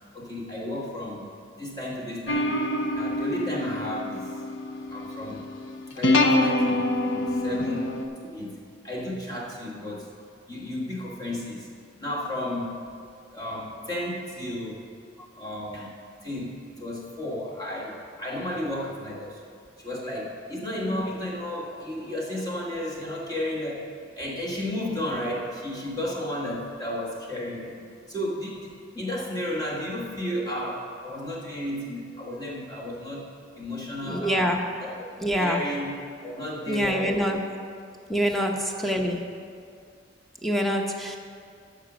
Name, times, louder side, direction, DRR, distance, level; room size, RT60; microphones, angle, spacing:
voice 1, 0.1-1.3 1.6-2.6 2.9-4.3 4.9-5.5 5.9-10.1 10.5-11.7 12.0-12.9 13.3-14.9 15.4-15.9 16.2-23.9 24.1-33.3 33.6-34.5 34.8-35.1 35.4-36.0 36.2-37.2 38.3-38.5, left 1 dB, 20° left, -4 dB, 1.5 m, -33 dB
sound 1, 2.3-8.1, left 1 dB, 70° left, 0.8 m, -26 dB
voice 2, 34.1-34.6 35.2-35.6 36.7-37.4 38.1-39.2 40.4-41.2, equal, ahead, 2 dB, 0.8 m, -25 dB
14.0 x 5.0 x 6.1 m, 2.3 s
head